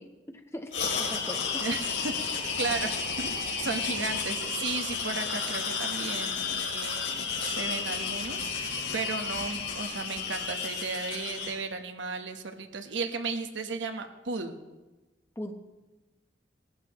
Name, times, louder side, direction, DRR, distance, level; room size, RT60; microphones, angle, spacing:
voice 1, 0.0-1.9 15.4-15.5, left 1 dB, 15° left, 5 dB, 0.9 m, -41 dB
sound 1, 0.7-11.5, left 5 dB, 75° left, 3.4 m, -32 dB
voice 2, 1.6-14.6, right 4 dB, 80° right, 7 dB, 1.1 m, -35 dB
19.5 x 14.5 x 3.0 m, 1.1 s
head